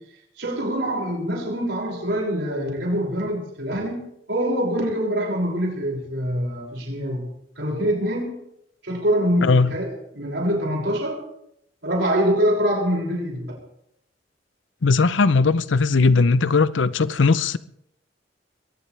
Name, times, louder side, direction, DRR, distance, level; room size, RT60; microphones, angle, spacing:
voice 1, 0.4-8.4 8.8-11.2 11.8-13.6, equal, 65° right, 6.2 m, -25 dB
voice 2, 9.4-9.7 14.8-17.6, left 4 dB, 90° left, 0.7 m, -18 dB
22.0 x 18.0 x 3.4 m
head